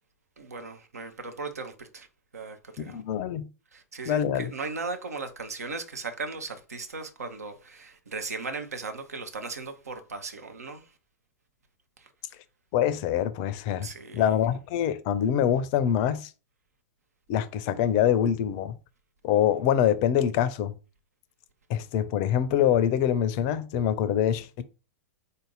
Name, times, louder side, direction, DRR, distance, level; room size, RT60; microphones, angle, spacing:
voice 1, 0.4-2.1 2.3-3.0 3.7-10.9 12.0-12.1 13.8-14.4, right 4 dB, 75° right, 0.8 m, -37 dB
voice 2, 2.8-3.5 4.1-4.5 12.7-13.9 14.1-16.3 17.3-18.8 19.2-20.7 21.7-24.6, left 10 dB, 40° left, 0.5 m, -25 dB
3.9 x 2.7 x 3.8 m
figure-of-eight pair, 100°, 8 cm